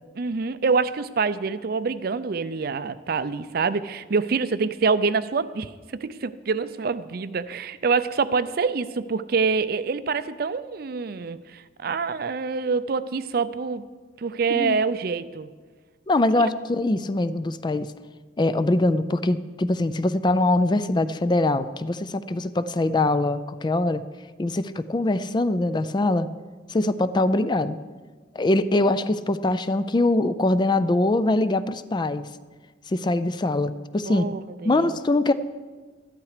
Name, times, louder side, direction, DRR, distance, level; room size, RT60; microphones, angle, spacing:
voice 1, 0.2-13.8 14.2-15.5 16.4-16.5 34.1-35.0, right 4 dB, 55° right, 14 dB, 0.5 m, -26 dB
voice 2, 16.1-17.9 18.4-24.0 24.4-26.3 26.7-27.8 28.3-32.3 32.9-34.3 34.6-35.3, left 2 dB, 25° left, 13 dB, 0.4 m, -23 dB
13.0 x 11.5 x 5.0 m, 1.4 s
head